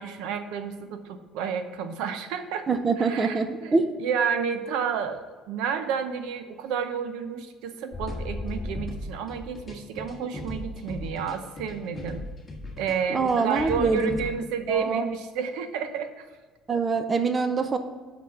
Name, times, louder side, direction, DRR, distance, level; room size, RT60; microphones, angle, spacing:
voice 1, 0.0-2.7 3.0-12.2 12.8-16.3, right 6 dB, 85° right, 8 dB, 0.7 m, -31 dB
voice 2, 2.7-3.9 13.1-14.2 14.7-15.0 16.7-17.8, right 4 dB, 25° right, 8 dB, 0.6 m, -24 dB
sound 1, 7.9-14.3, left 2 dB, 15° left, 1.5 m, -37 dB
6.0 x 5.7 x 6.4 m, 1.4 s
cardioid pair, 145°, 0 cm